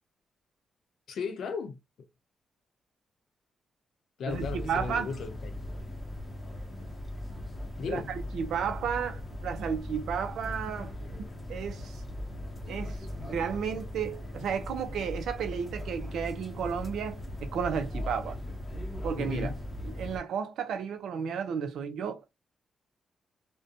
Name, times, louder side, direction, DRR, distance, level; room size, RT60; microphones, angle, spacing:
voice 1, 1.1-1.8 4.2-5.5 7.8-8.1 19.2-19.6, left 5 dB, 70° left, 0.6 m, -35 dB
sound 1, 4.3-20.2, left 1 dB, 20° left, 0.7 m, -39 dB
voice 2, 4.3-5.1 7.9-10.9 11.5-12.0 12.7-18.4 19.0-19.5 20.0-22.3, right 7 dB, 80° right, 0.4 m, -33 dB
2.5 x 2.1 x 2.5 m
cardioid pair, 95°, 0 cm